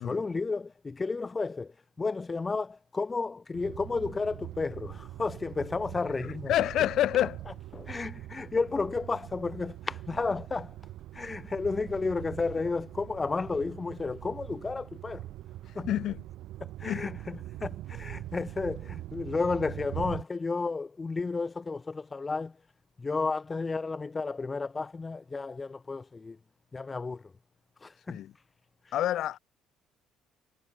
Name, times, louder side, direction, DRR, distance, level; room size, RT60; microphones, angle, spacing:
voice 1, 0.0-1.7 2.0-6.5 7.7-10.7 11.1-15.2 15.8-15.9 16.6-22.5 23.0-26.4 26.7-27.2 27.8-28.2, left 4 dB, 25° left, 0.8 m, -32 dB
sound 1, 3.5-20.2, right 15 dB, 75° right, 0.5 m, -43 dB
voice 2, 6.5-7.4 15.9-16.2 16.9-17.1 28.1-28.3 28.9-29.4, left 12 dB, 65° left, 0.7 m, -27 dB
supercardioid pair, 85°, 0 cm